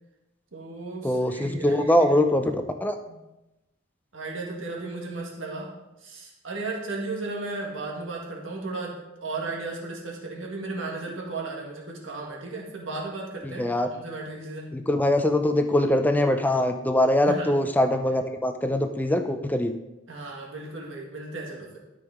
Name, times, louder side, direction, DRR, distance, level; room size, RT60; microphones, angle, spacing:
voice 1, 0.5-2.4 3.1-3.2 4.1-5.7 6.0-14.8 17.2-17.6 20.1-21.8, right 3 dB, 70° right, -2 dB, 1.9 m, -35 dB
voice 2, 1.0-2.4 2.8-3.0 13.4-13.9 14.7-19.7, left 1 dB, 10° left, 7 dB, 0.5 m, -22 dB
12.5 x 5.3 x 3.6 m, 0.97 s
head